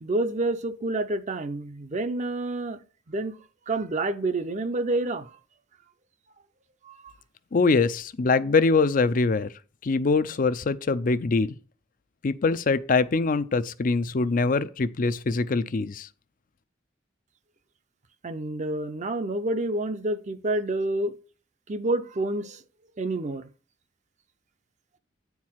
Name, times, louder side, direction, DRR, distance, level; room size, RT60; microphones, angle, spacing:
voice 1, 0.0-2.8 3.1-3.4 3.7-5.3 6.8-7.1 18.2-21.1 21.7-22.6 23.0-23.5, right 2 dB, 40° right, 0.6 m, -28 dB
voice 2, 7.5-9.5 9.8-11.6 12.2-16.1, left 4 dB, 45° left, 0.5 m, -23 dB
9.4 x 4.7 x 5.6 m
head